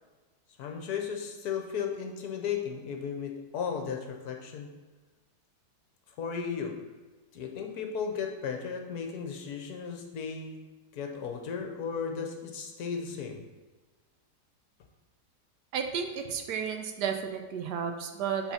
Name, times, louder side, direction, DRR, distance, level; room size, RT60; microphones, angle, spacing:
voice 1, 0.6-4.7 6.2-6.7 7.3-10.6 10.9-13.4, left 6 dB, 65° left, 3 dB, 1.2 m, -35 dB
voice 2, 15.7-18.5, right 7 dB, 75° right, 5 dB, 1.2 m, -32 dB
5.7 x 4.0 x 5.6 m, 1.3 s
omnidirectional pair, 1.9 m